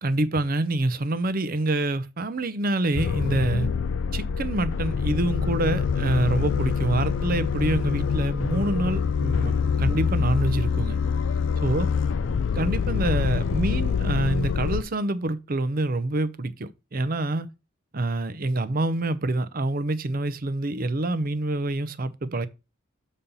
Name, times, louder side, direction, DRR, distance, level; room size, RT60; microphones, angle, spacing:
voice 1, 0.0-3.7 4.1-11.0 11.6-11.9 12.5-17.5 17.9-22.5, right 2 dB, 45° right, 0.6 m, -26 dB
sound 1, 2.9-14.8, left 6 dB, 60° left, 0.4 m, -25 dB
7.1 x 4.2 x 5.3 m
head